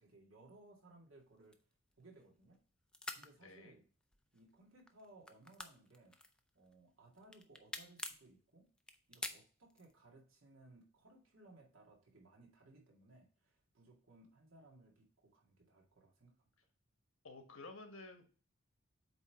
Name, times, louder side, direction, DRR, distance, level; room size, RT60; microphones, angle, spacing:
voice 1, 0.0-1.6 2.0-2.6 3.1-3.8 4.3-6.2 6.5-8.7 9.1-16.3, right 2 dB, 75° right, 0 dB, 2.0 m, -62 dB
sound 1, 1.4-2.6 2.9-3.3 4.0-4.5 4.8-6.7 7.1-8.3 8.8-10.0, left 2 dB, 5° left, 0.4 m, -46 dB
voice 2, 3.4-3.8 17.2-18.3, left 3 dB, 80° left, 6 dB, 1.2 m, -52 dB
8.0 x 3.3 x 4.6 m, 0.39 s
head